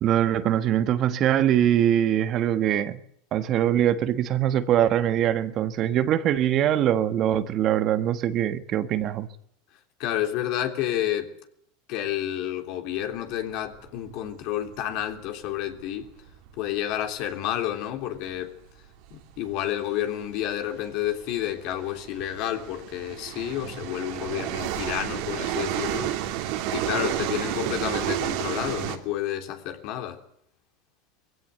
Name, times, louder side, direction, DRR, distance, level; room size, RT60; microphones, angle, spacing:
voice 1, 0.0-3.0 3.3-9.3, right 11 dB, 45° right, 1.4 m, -23 dB
voice 2, 10.0-11.3 11.9-16.1 16.6-18.5 19.1-26.1 26.7-30.2, left 12 dB, 60° left, 3.3 m, -30 dB
sound 1, 13.4-17.3 17.6-17.7 18.0-18.2 19.0-19.2 19.5-19.6 20.2-29.0, right 12 dB, 65° right, 2.9 m, -31 dB
20.5 x 16.0 x 8.1 m
supercardioid pair, 110°, 0 cm